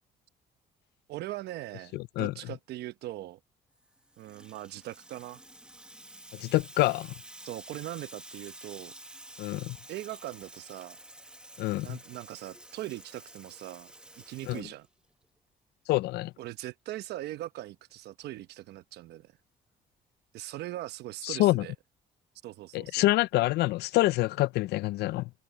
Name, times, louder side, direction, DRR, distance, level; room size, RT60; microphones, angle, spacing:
voice 1, 1.1-3.4 4.2-5.4 7.4-8.9 9.9-11.0 11.8-14.9 16.4-19.3 20.3-21.7 22.4-23.0, right 15 dB, 75° right, 1.0 m, -40 dB
voice 2, 1.9-2.3 6.3-7.1 9.4-9.8 11.6-12.0 14.5-14.6 15.9-16.3 21.2-21.7 22.7-25.3, left 18 dB, 75° left, 0.5 m, -26 dB
Water tap faucet / Sink (filling or washing), 3.8-15.3, right 1 dB, 5° right, 1.3 m, -50 dB
cardioid pair, 110°, 17 cm